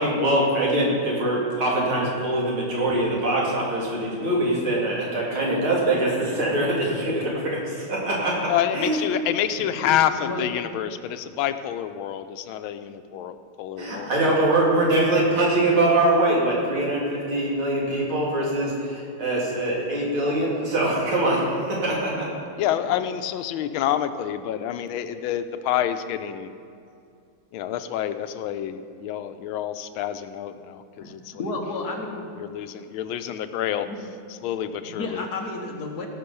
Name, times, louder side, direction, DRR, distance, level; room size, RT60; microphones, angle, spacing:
voice 1, 0.0-9.0 13.8-22.3, right 1 dB, 85° right, -4 dB, 3.5 m, -23 dB
voice 2, 8.5-14.5 22.6-26.5 27.5-31.4 32.4-33.9 34.3-35.3, left 10 dB, 90° left, 10 dB, 1.4 m, -28 dB
voice 3, 9.4-10.6 22.6-22.9 31.0-32.3 33.8-34.0 34.8-36.1, left 2 dB, 55° left, 1 dB, 1.7 m, -33 dB
17.5 x 6.1 x 5.5 m, 2.4 s
omnidirectional pair, 2.2 m